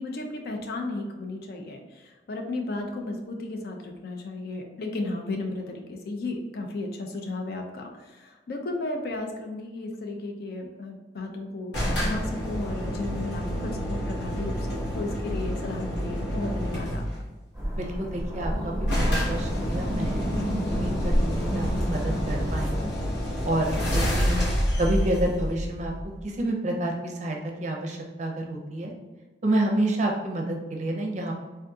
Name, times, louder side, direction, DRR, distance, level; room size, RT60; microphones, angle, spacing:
voice 1, 0.0-17.0, left 2 dB, 60° left, 2 dB, 0.5 m, -34 dB
sound 1, 11.7-17.3 18.3-18.4 18.5-18.6 18.9-26.4, equal, 85° left, 1.0 m, -29 dB
sound 2, 17.5-22.8, equal, 5° left, 1.0 m, -28 dB
voice 2, 17.8-20.3 20.7-22.9 23.4-24.4 24.8-25.9 26.4-28.9 29.4-31.3, right 1 dB, 40° right, 0 dB, 0.5 m, -29 dB
3.5 x 2.6 x 2.3 m, 1.2 s
head